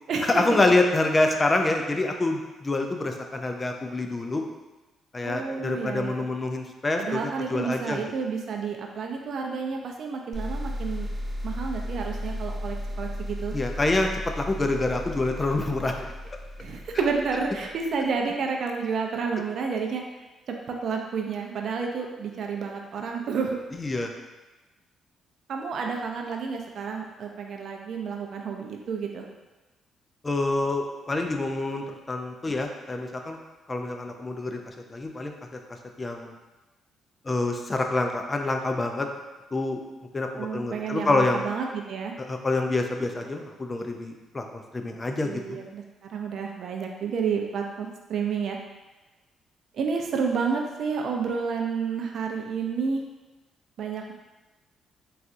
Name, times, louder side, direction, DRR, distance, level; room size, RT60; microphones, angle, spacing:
voice 1, 0.3-4.4 5.1-8.0 13.5-14.1 14.4-16.1 16.9-17.0 23.7-24.1 30.2-33.4 33.7-35.3 36.0-36.3 37.3-39.1 39.5-39.8 40.1-41.5 42.3-45.6, left 2 dB, 25° left, 3 dB, 0.3 m, -26 dB
voice 2, 5.2-6.3 7.0-11.1 11.4-13.5 16.6-20.0 20.5-23.6 25.5-29.2 40.4-42.1 45.2-45.8 46.1-48.6 49.7-53.0 53.8-54.1, right 5 dB, 65° right, 2 dB, 0.4 m, -30 dB
sound 1, 10.3-17.8, equal, ahead, 1.2 m, -35 dB
4.1 x 2.3 x 2.5 m, 1.1 s
cardioid pair, 90°, 0 cm